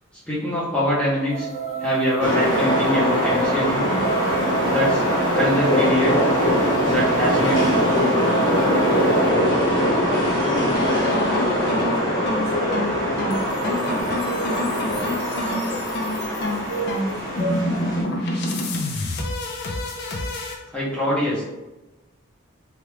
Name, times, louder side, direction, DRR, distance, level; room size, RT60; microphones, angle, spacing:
voice 1, 0.3-1.5 1.8-4.0 4.7-5.0 5.3-6.1 6.9-7.9 20.7-21.4, left 1 dB, 5° left, -8 dB, 0.7 m, -24 dB
sound 1, 1.3-9.3, right 7 dB, 35° right, 0.4 m, -29 dB
sound 2, 2.2-18.0, equal, 70° left, 1.3 m, -22 dB
voice 2, 8.4-11.9 12.3-13.5 13.8-15.8 16.2-16.4 16.7-18.4, right 1 dB, 50° right, -4 dB, 0.9 m, -34 dB
sound 3, 10.7-20.6, left 1 dB, 50° left, 0.4 m, -28 dB
2.9 x 2.4 x 3.3 m, 1.0 s
head